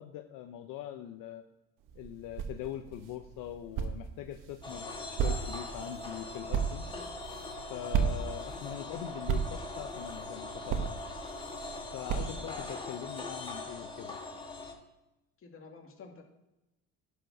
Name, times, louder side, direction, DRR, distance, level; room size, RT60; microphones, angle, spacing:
voice 1, 0.0-1.4 1.9-6.9 7.7-10.9 11.9-14.2, left 11 dB, 70° left, 6 dB, 0.8 m, -42 dB
sound 1, 1.8-12.7, right 7 dB, 70° right, 1.3 m, -36 dB
sound 2, 4.6-14.7, left 3 dB, 15° left, 2.0 m, -42 dB
voice 2, 15.4-16.2, left 4 dB, 40° left, 1 dB, 2.4 m, -52 dB
11.5 x 5.0 x 6.1 m, 0.96 s
cardioid pair, 120°, 33 cm